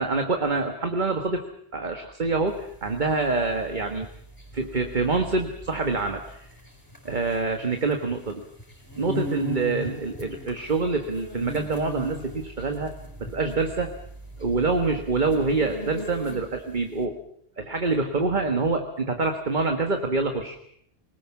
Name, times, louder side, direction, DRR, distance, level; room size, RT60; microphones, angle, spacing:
voice 1, 0.0-1.4 1.7-4.1 4.5-6.5 7.0-8.4 9.0-12.9 13.2-13.9 14.4-17.2 17.6-20.6, right 3 dB, 45° right, 5 dB, 1.7 m, -26 dB
sound 1, 2.5-16.7, left 2 dB, 20° left, 5.0 m, -38 dB
24.0 x 19.5 x 7.2 m, 0.68 s
omnidirectional pair, 1.1 m